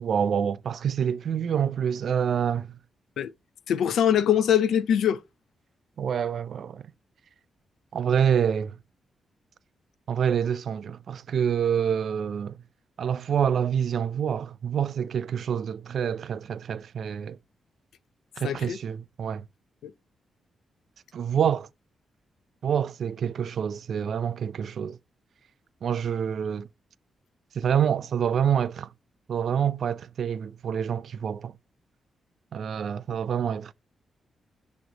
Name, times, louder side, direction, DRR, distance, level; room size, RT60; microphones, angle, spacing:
voice 1, 0.0-2.8 6.0-6.8 7.9-8.8 10.1-12.6 13.0-17.4 18.4-19.4 21.1-21.7 22.6-25.0 25.8-26.7 27.5-28.9 29.3-31.5 32.5-33.7, right 8 dB, 65° right, 0.4 m, -27 dB
voice 2, 3.7-5.2 18.4-18.8 19.8-19.9, left 9 dB, 85° left, 0.5 m, -23 dB
8.0 x 3.1 x 3.9 m
cardioid pair, 125°, 0 cm